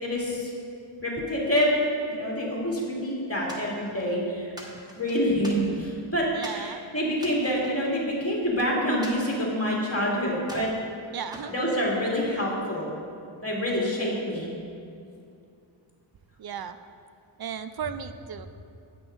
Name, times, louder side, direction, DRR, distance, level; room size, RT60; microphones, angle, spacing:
voice 1, 0.0-0.5 1.0-1.8 2.1-4.5 5.0-10.7 11.5-12.9 13.4-14.5, equal, 30° left, -3 dB, 2.3 m, -27 dB
sound 1, 3.5-4.1 4.6-6.0 6.4-6.7 7.1-8.5 9.0-10.0 10.4-10.8 11.3-12.4, equal, 10° right, 1.2 m, -44 dB
voice 2, 6.3-6.8 11.1-11.7 16.4-16.8 17.4-18.5, right 7 dB, 50° right, 10 dB, 0.5 m, -35 dB
8.8 x 6.1 x 5.1 m, 2.5 s
wide cardioid pair, 90°, 48 cm